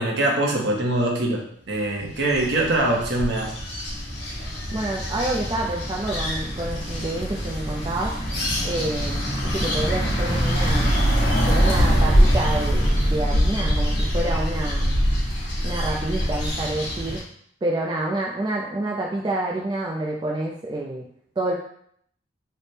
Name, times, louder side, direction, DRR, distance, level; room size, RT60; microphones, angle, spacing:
voice 1, 0.0-3.5, right 1 dB, 65° right, -1 dB, 0.8 m, -23 dB
sound 1, 2.0-17.2, equal, 65° left, 1.2 m, -23 dB
voice 2, 4.7-8.2 8.6-9.2 9.5-11.0 11.5-15.0 15.6-17.2 17.6-21.1 21.4-21.5, right 2 dB, 25° right, -2 dB, 0.3 m, -28 dB
3.2 x 2.1 x 4.2 m, 0.65 s
head